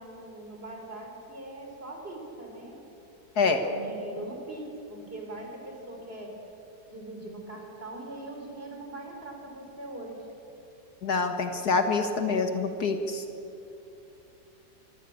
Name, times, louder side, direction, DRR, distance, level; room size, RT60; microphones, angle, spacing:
voice 1, 0.0-2.8 3.4-4.6 4.9-6.3 6.9-10.3, right 2 dB, 30° right, 1 dB, 4.2 m, -41 dB
voice 2, 11.0-13.2, left 4 dB, 60° left, 6 dB, 1.9 m, -26 dB
23.5 x 15.5 x 8.6 m, 2.8 s
omnidirectional pair, 1.9 m